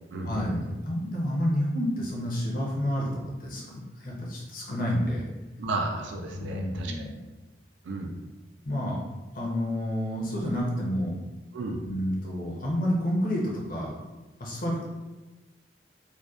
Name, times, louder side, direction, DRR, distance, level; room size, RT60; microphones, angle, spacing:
voice 1, 0.2-3.1 3.4-5.2 6.3-7.1 8.6-9.0 9.3-11.1 11.9-13.9 14.4-14.8, equal, 45° left, -3 dB, 0.5 m, -29 dB
voice 2, 5.6-7.0 7.8-8.1 11.5-11.9, right 2 dB, 70° right, 2 dB, 0.4 m, -33 dB
2.5 x 2.1 x 2.3 m, 1.1 s
head